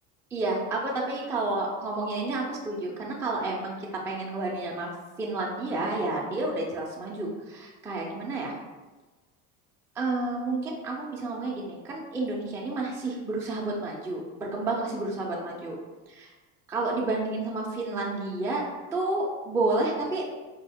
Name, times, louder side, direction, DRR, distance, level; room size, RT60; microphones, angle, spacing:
voice 1, 0.3-3.8 4.0-4.9 5.2-8.5 10.0-15.8 16.1-16.3 16.7-18.6 18.9-20.2, right 2 dB, 5° right, -3 dB, 0.3 m, -30 dB
4.3 x 2.0 x 3.4 m, 1.2 s
supercardioid pair, 115°, 43 cm